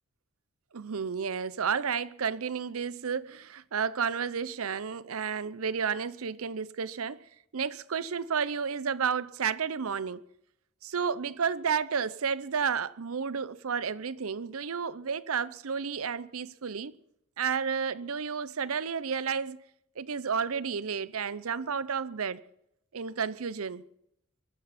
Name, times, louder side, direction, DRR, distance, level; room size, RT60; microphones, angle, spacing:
voice 1, 0.7-7.2 7.5-10.2 10.8-16.9 17.4-19.6 20.0-22.4 22.9-23.8, right 6 dB, 80° right, 0.7 m, -31 dB
22.5 x 14.5 x 4.2 m
head